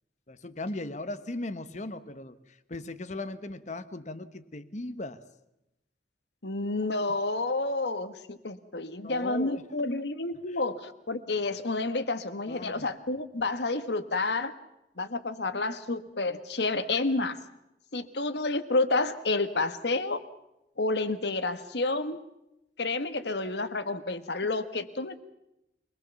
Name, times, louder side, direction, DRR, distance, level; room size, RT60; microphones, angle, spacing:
voice 1, 0.3-2.4 2.7-5.2 9.0-9.9 12.5-12.9, left 2 dB, 40° left, 12 dB, 1.2 m, -38 dB
voice 2, 6.4-14.5 15.0-17.4 17.9-20.2 20.8-22.2 22.8-25.2, left 3 dB, 75° left, 11 dB, 1.5 m, -30 dB
24.5 x 20.0 x 7.1 m, 0.88 s
head